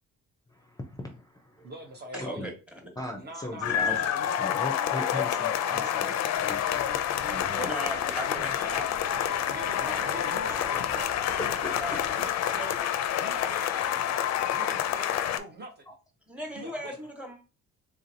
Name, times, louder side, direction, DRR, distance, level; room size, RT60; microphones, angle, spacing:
voice 1, 0.5-1.7 2.1-2.5 3.0-4.1 4.4-6.1 6.4-6.6 7.3-7.7 14.6-14.7 15.9-16.0, left 1 dB, 10° left, 0.5 m, -39 dB
voice 2, 1.6-2.5 3.1-7.8 8.3-11.8 12.1-12.8 13.2-14.2 14.5-16.0 16.5-16.9, right 1 dB, 35° right, 0.7 m, -44 dB
voice 3, 2.1-2.5 3.7-4.0 7.6-9.2 9.8-10.2 11.8-12.1 12.5-12.9 16.3-17.4, equal, 5° right, 1.1 m, -37 dB
sound 1, 3.6-15.4, left 10 dB, 60° left, 0.4 m, -28 dB
Livestock farm animals working animals, 6.4-12.1, right 2 dB, 55° right, 1.5 m, -45 dB
3.4 x 2.8 x 2.6 m
cardioid pair, 90°, 30 cm